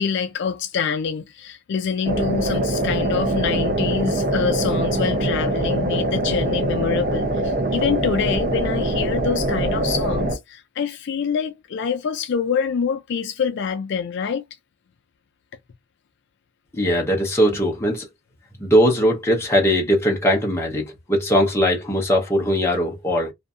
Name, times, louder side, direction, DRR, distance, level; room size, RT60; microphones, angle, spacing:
voice 1, 0.0-14.4, left 6 dB, 55° left, 0.3 m, -25 dB
sound 1, 2.0-10.4, right 1 dB, 40° right, 0.5 m, -23 dB
voice 2, 16.7-18.1 18.6-23.3, equal, 10° left, 0.7 m, -20 dB
2.5 x 2.5 x 2.3 m
head